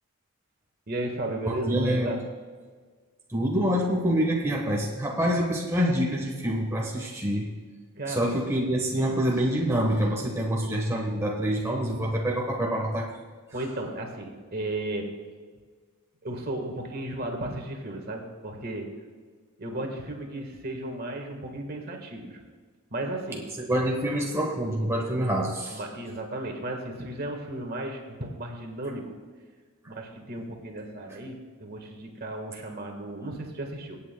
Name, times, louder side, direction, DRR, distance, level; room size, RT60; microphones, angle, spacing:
voice 1, 0.9-2.2 8.0-8.4 8.9-9.1 13.5-15.1 16.2-19.0 19.6-22.4 22.9-23.5 25.7-29.1 29.9-34.0, right 1 dB, 45° right, 2 dB, 1.5 m, -34 dB
voice 2, 1.5-2.2 3.3-7.5 8.1-13.1 23.6-25.8, equal, 15° right, -2 dB, 1.2 m, -26 dB
25.0 x 8.6 x 2.2 m, 1.5 s
head